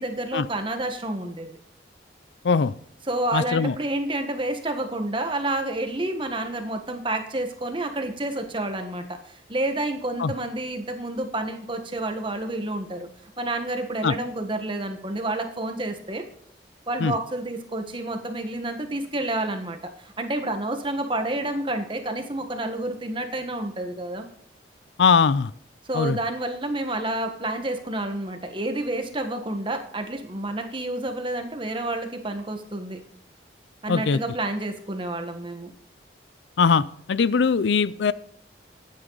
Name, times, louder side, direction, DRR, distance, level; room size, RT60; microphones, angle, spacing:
voice 1, 0.0-1.6 3.1-13.1 13.4-16.2 16.9-24.3 25.9-33.0 33.8-35.7, right 2 dB, 30° right, 6 dB, 1.3 m, -29 dB
voice 2, 3.3-3.7 10.2-10.3 14.0-14.1 17.0-17.1 25.0-25.5 25.9-26.2 33.9-34.2 36.6-36.8 37.1-38.1, left 5 dB, 80° left, 18 dB, 0.4 m, -20 dB
11.0 x 9.6 x 3.9 m, 0.66 s
head